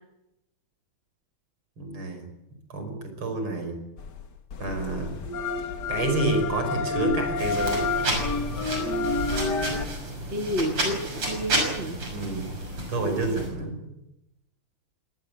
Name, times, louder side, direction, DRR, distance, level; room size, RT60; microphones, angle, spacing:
voice 1, 1.8-2.2 2.7-3.8 4.6-5.2 5.9-7.9 12.1-12.5 12.9-13.8, right 2 dB, 70° right, 6 dB, 6.3 m, -28 dB
sound 1, 4.0-9.9, left 3 dB, 55° left, 2.0 m, -29 dB
sound 2, 7.4-13.5, right 1 dB, 90° right, 6.9 m, -31 dB
voice 2, 10.3-12.0 13.5-13.9, equal, 30° right, 4 dB, 2.3 m, -31 dB
24.5 x 19.5 x 8.3 m, 0.89 s
omnidirectional pair, 2.4 m